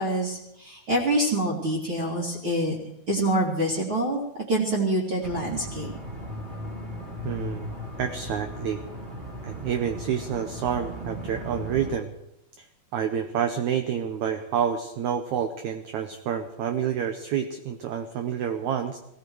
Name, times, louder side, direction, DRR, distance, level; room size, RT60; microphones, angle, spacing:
voice 1, 0.0-2.8 3.1-5.9, right 1 dB, 40° right, -5 dB, 2.7 m, -26 dB
sound 1, 5.2-11.9, left 1 dB, 15° right, 2.0 m, -37 dB
voice 2, 7.2-7.7 8.0-8.8 9.4-12.1 12.6-12.7 12.9-19.0, right 8 dB, 80° right, 7 dB, 1.7 m, -28 dB
18.0 x 17.0 x 4.6 m, 0.85 s
omnidirectional pair, 4.4 m